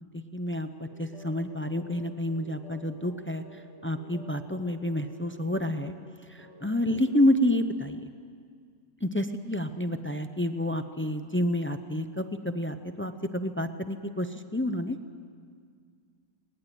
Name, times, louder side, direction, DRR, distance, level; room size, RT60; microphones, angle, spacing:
voice 1, 0.1-3.4 3.8-5.9 6.3-8.1 9.0-15.0, left 1 dB, 20° left, 9 dB, 0.3 m, -29 dB
sound 1, 0.8-7.3, left 1 dB, 45° right, 4.3 m, -51 dB
21.5 x 20.0 x 9.3 m, 2.1 s
omnidirectional pair, 1.6 m